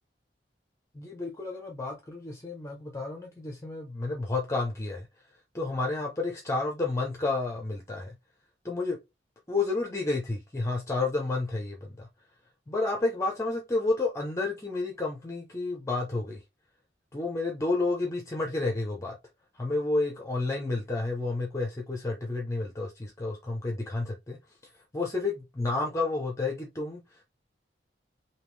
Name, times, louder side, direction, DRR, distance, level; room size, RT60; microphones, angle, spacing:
voice 1, 0.9-5.1 5.5-8.1 8.6-9.0 9.5-12.1 12.7-16.4 17.1-19.1 19.5-24.4 24.9-27.2, left 3 dB, 15° left, 0.6 m, -30 dB
3.5 x 2.7 x 3.1 m
head